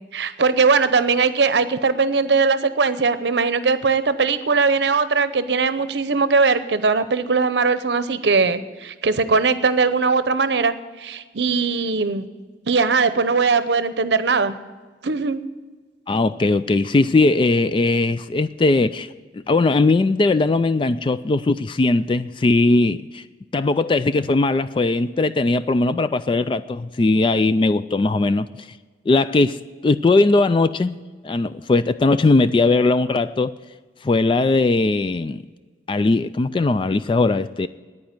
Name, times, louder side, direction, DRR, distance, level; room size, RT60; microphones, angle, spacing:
voice 1, 0.1-12.3 12.7-14.5 15.0-15.4, right 4 dB, 70° right, 0.7 m, -20 dB
voice 2, 16.1-19.1 19.3-23.2 23.5-28.5 29.1-29.6 29.8-31.0 31.2-33.5 34.0-35.4 35.9-37.7, left 3 dB, 30° left, 0.3 m, -19 dB
9.7 x 9.4 x 9.0 m
head